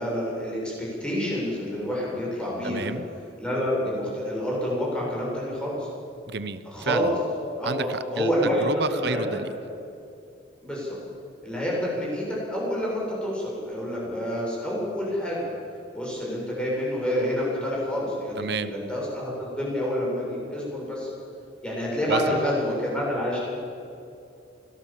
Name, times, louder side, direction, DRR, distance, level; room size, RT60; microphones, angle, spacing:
voice 1, 0.0-2.9 3.4-5.9 6.7-7.1 7.6-9.2 10.6-11.0 11.4-15.5 15.9-21.1 21.6-23.4, equal, 5° left, -5 dB, 7.9 m, -28 dB
voice 2, 2.6-3.1 6.3-7.2 7.6-9.5 18.4-18.7 22.1-22.4, right 4 dB, 65° right, 13 dB, 0.9 m, -30 dB
24.5 x 18.0 x 7.6 m, 2.6 s
head